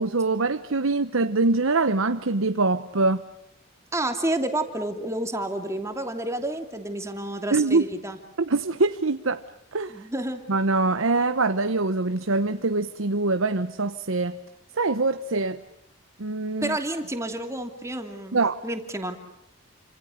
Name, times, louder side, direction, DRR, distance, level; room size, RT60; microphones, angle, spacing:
voice 1, 0.0-3.2 7.5-7.9 8.4-9.4 9.7-10.0 10.5-14.4 14.7-15.6 16.2-16.8 18.3-18.5, right 3 dB, 75° right, 9 dB, 1.0 m, -24 dB
voice 2, 3.9-8.2 9.9-10.4 16.6-18.4 18.6-19.2, right 1 dB, 15° right, 5 dB, 2.8 m, -30 dB
29.5 x 26.5 x 6.6 m, 0.81 s
head